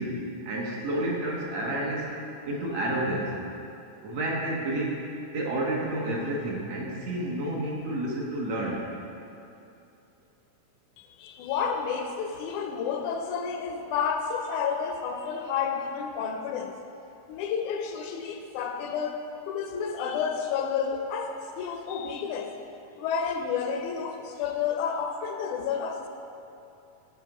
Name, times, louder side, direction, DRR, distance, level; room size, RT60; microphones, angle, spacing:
voice 1, 0.0-2.1 2.5-3.3 4.0-5.0 5.3-8.8, right 1 dB, 65° right, -3 dB, 1.9 m, -30 dB
voice 2, 11.0-16.8 17.3-19.2 19.5-22.5 23.0-26.1, left 6 dB, 80° left, 5 dB, 1.9 m, -30 dB
12.0 x 4.9 x 4.9 m, 2.7 s
omnidirectional pair, 3.6 m